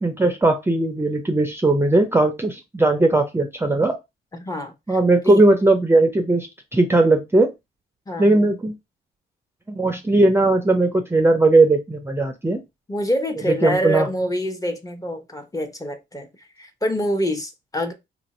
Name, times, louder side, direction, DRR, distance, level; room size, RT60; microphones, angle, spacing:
voice 1, 0.0-3.9 4.9-7.5 8.2-8.8 9.7-12.6 13.5-14.1, right 2 dB, 10° right, 0.6 m, -18 dB
voice 2, 4.3-5.0 5.2-5.4 8.1-8.5 12.9-17.9, equal, 15° left, 0.8 m, -26 dB
2.8 x 2.6 x 4.1 m
cardioid pair, 90°, 20 cm